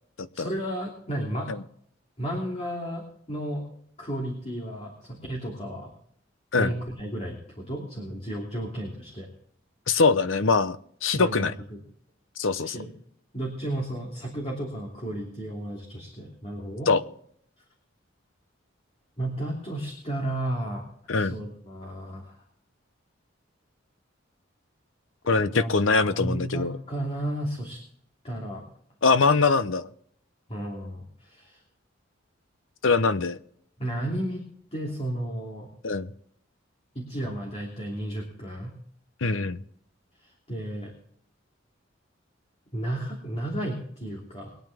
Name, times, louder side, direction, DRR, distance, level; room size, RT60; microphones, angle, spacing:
voice 1, 0.3-1.5 2.2-3.6 4.0-5.9 6.6-9.3 11.1-11.8 12.6-12.9 13.3-16.9 19.2-22.4 25.4-27.8 28.2-28.6 30.5-31.6 33.8-34.4 34.7-35.7 36.9-38.7 40.2-40.9 42.7-44.6, right 1 dB, 35° left, -2 dB, 3.1 m, -33 dB
voice 2, 9.9-10.8 11.0-11.5 12.4-12.8 16.9-17.0 21.1-21.4 25.3-26.7 29.0-29.9 32.8-33.4 35.8-36.1 39.2-39.6, left 4 dB, 85° left, 13 dB, 0.8 m, -23 dB
22.5 x 9.2 x 3.6 m, 0.66 s
head